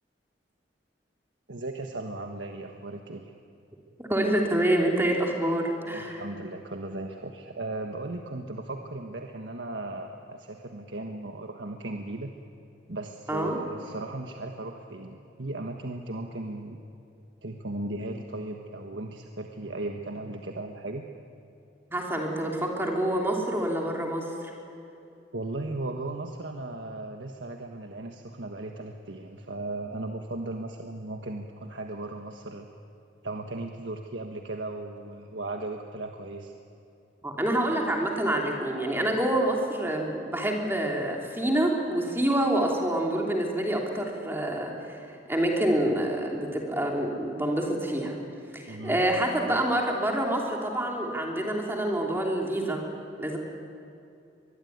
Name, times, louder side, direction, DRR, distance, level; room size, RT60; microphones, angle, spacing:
voice 1, 1.5-3.3 5.9-12.3 12.9-16.8 17.4-21.0 25.3-32.7 33.2-36.5 48.7-49.0, right 2 dB, 85° right, 3 dB, 1.5 m, -36 dB
voice 2, 4.0-6.2 13.3-13.6 21.9-24.5 37.2-48.2 48.5-52.8 53.2-53.4, right 1 dB, 15° right, 0 dB, 3.1 m, -27 dB
24.5 x 22.0 x 9.5 m, 2.7 s
head